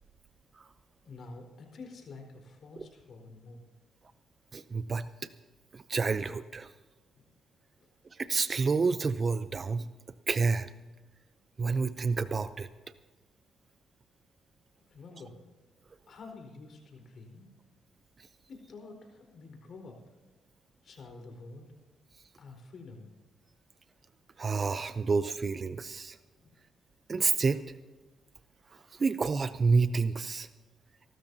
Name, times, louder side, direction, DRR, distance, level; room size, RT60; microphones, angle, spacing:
voice 1, 1.0-3.7 7.1-7.2 7.8-7.9 14.9-15.4 16.1-17.5 18.5-20.0 20.8-21.7 22.4-23.1, left 3 dB, 55° left, 2 dB, 4.4 m, -48 dB
voice 2, 4.5-5.1 5.7-6.7 8.2-9.9 10.3-10.7 11.6-12.7 24.4-26.2 27.1-27.6 29.0-30.5, right 4 dB, 35° right, 12 dB, 0.6 m, -28 dB
26.5 x 13.0 x 2.8 m, 1.2 s
cardioid pair, 90°, 0 cm